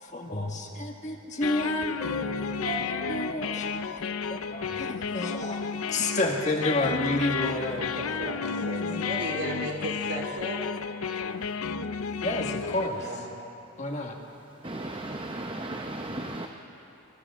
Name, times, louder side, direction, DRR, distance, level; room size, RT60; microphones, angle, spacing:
voice 1, 0.0-2.3 2.6-7.8 8.8-9.1 12.2-13.1 13.8-14.2, left 1 dB, 35° left, 1 dB, 1.7 m, -31 dB
sound 1, 1.4-12.9, left 6 dB, 85° left, 0.6 m, -32 dB
voice 2, 7.7-10.7 13.0-13.2, right 1 dB, 55° right, -2 dB, 3.9 m, -35 dB
voice 3, 14.6-16.5, right 1 dB, 25° right, 3 dB, 0.8 m, -35 dB
28.5 x 25.5 x 3.7 m, 2.9 s
head